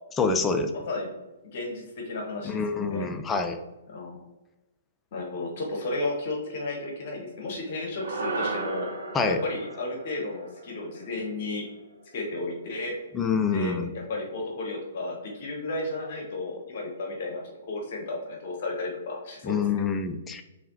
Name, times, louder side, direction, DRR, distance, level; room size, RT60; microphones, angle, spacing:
voice 1, 0.2-0.7 2.4-3.6 9.1-9.4 13.1-13.9 19.4-20.4, left 4 dB, 15° left, 7 dB, 0.4 m, -26 dB
voice 2, 1.5-3.1 3.9-4.2 5.1-8.9 9.2-11.7 12.1-13.0 13.5-19.6, left 2 dB, 45° left, 0 dB, 1.2 m, -33 dB
sound 1, 8.0-12.5, right 3 dB, 55° right, 0.7 m, -36 dB
5.6 x 3.5 x 2.7 m, 1.0 s
figure-of-eight pair, 120°, 0 cm